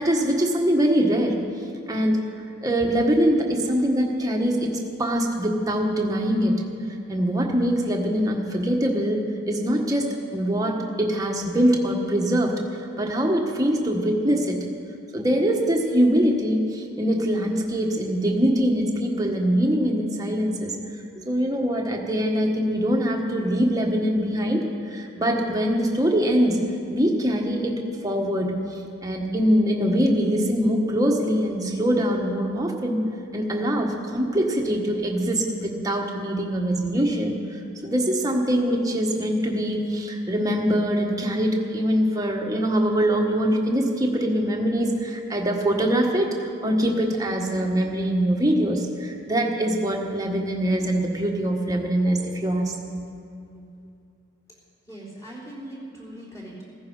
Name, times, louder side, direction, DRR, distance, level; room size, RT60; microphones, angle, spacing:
voice 1, 0.0-1.4 1.9-2.2 2.6-4.7 5.0-6.7 7.1-12.6 13.0-14.7 15.1-20.8 21.2-28.6 29.0-33.0 33.3-53.1, equal, 15° right, 0 dB, 1.4 m, -23 dB
voice 2, 54.8-56.6, right 1 dB, 15° left, -6 dB, 3.6 m, -40 dB
15.0 x 14.5 x 5.5 m, 2.5 s
head